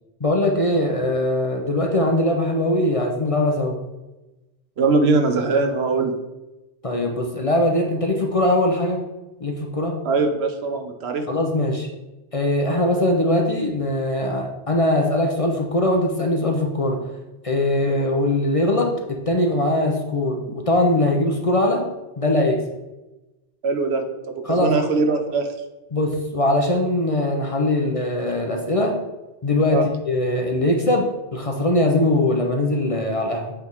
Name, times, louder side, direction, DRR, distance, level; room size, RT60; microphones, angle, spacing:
voice 1, 0.2-3.8 6.8-9.0 9.4-10.0 11.3-11.9 12.3-17.0 17.4-21.9 22.2-22.6 24.5-24.7 25.9-29.0 29.4-29.8 30.1-33.5, left 1 dB, 35° left, 1 dB, 0.7 m, -21 dB
voice 2, 4.8-6.2 10.0-11.2 23.6-25.5 29.7-29.9, right 3 dB, 70° right, 6 dB, 1.0 m, -21 dB
7.8 x 3.5 x 4.7 m, 1.1 s
omnidirectional pair, 1.2 m